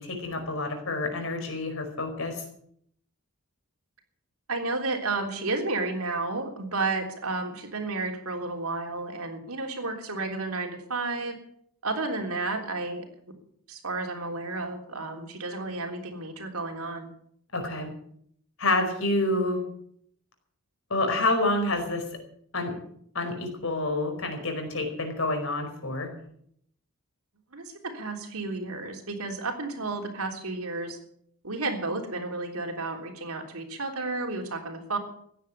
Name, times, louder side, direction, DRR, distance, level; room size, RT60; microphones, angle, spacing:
voice 1, 0.0-2.4 17.5-17.9 18.6-19.6 20.9-22.0 22.5-22.7 23.1-26.1, left 2 dB, 65° left, 5 dB, 4.9 m, -28 dB
voice 2, 4.5-11.4 11.8-13.1 13.7-17.1 27.5-31.0 31.4-35.0, right 3 dB, 80° right, 3 dB, 3.5 m, -32 dB
15.5 x 10.5 x 8.4 m, 0.67 s
head